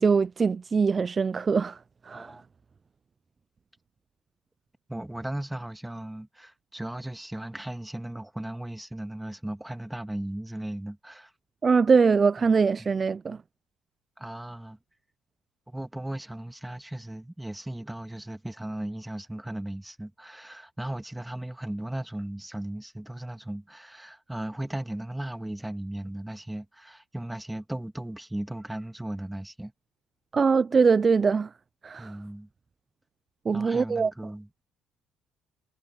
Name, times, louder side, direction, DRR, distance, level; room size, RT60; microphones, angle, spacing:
voice 1, 0.0-1.8 2.1-2.3 11.6-13.4 30.3-31.5 31.8-32.2 33.5-34.1, right 5 dB, 35° right, 0.4 m, -22 dB
voice 2, 2.1-2.4 4.9-11.3 12.4-12.5 12.8-12.9 14.2-14.8 15.7-29.7 32.0-32.5 33.5-34.5, right 1 dB, 5° right, 2.7 m, -36 dB
supercardioid pair, 80°, 0 cm